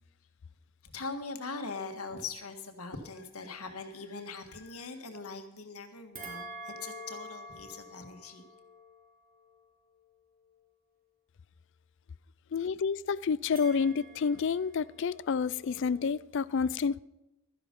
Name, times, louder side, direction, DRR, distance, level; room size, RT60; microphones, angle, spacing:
voice 1, 0.8-8.5, left 4 dB, 80° left, 1.7 m, -41 dB
sound 1, 6.1-10.6 13.5-16.1, right 1 dB, 40° right, 3.2 m, -48 dB
voice 2, 12.5-17.0, left 5 dB, 55° left, 0.4 m, -29 dB
13.5 x 11.0 x 5.3 m
head